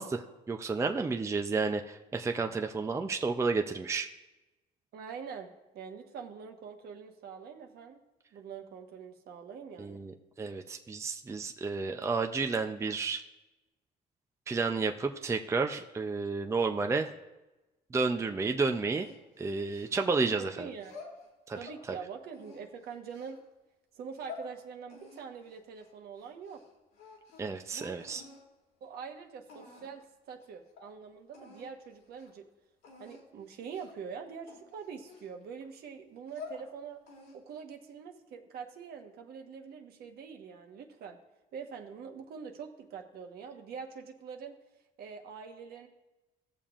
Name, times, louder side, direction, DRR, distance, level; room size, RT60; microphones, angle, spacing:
voice 1, 0.0-4.1 9.8-13.2 14.5-17.1 17.9-19.1 19.4-20.7 21.5-21.6 21.9-22.0 27.4-28.2, right 4 dB, 15° right, 5 dB, 0.5 m, -31 dB
voice 2, 4.9-8.0 8.3-10.0 20.4-21.0 21.6-23.4 24.0-26.6 27.7-28.0 28.8-32.4 33.0-37.0 37.3-41.2 41.5-44.6 45.0-45.9, right 6 dB, 65° right, 4 dB, 1.2 m, -44 dB
sound 1, 18.9-20.2 20.7-21.8 22.3-23.4 23.9-24.5 24.9-26.7 26.9-27.6 28.0-28.4 29.1-29.2 29.5-30.0 30.4-30.5 30.8-30.9 31.3-31.7 32.1-32.3 32.8-33.2 33.7-34.0 34.5-35.7 36.1-36.6 37.1-37.6, left 4 dB, 90° left, 2.3 m, -49 dB
17.0 x 7.0 x 2.5 m, 1.1 s
cardioid pair, 110°, 17 cm